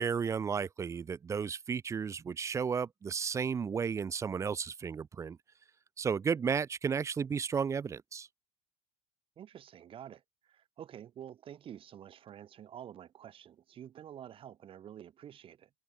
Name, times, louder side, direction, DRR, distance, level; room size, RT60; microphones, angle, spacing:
voice 1, 0.0-5.4 6.0-8.3, right 6 dB, 20° right, 0.6 m, -33 dB
voice 2, 9.4-15.7, right 10 dB, 35° right, 2.5 m, -49 dB
supercardioid pair, 130°, 16 cm